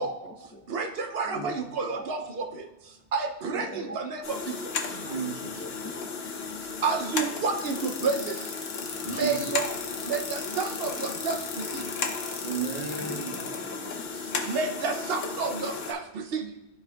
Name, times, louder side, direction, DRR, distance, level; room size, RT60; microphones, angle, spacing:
voice 1, 0.0-0.9 1.3-2.2 3.6-4.0 5.0-5.1 5.6-6.1 6.5-6.6 13.0-14.5, equal, 15° left, 1 dB, 0.5 m, -41 dB
voice 2, 0.7-5.0 6.5-8.5 9.0-11.9 14.1-16.5, right 4 dB, 70° right, 5 dB, 0.8 m, -31 dB
sound 1, 4.2-15.9, left 5 dB, 75° left, 1.0 m, -35 dB
voice 3, 4.9-5.7 9.0-9.4 12.4-13.5, right 6 dB, 40° right, 1 dB, 1.0 m, -34 dB
sound 2, 7.6-13.6, left 5 dB, 50° left, 0.8 m, -38 dB
12.5 x 4.3 x 2.3 m, 1.0 s
omnidirectional pair, 1.0 m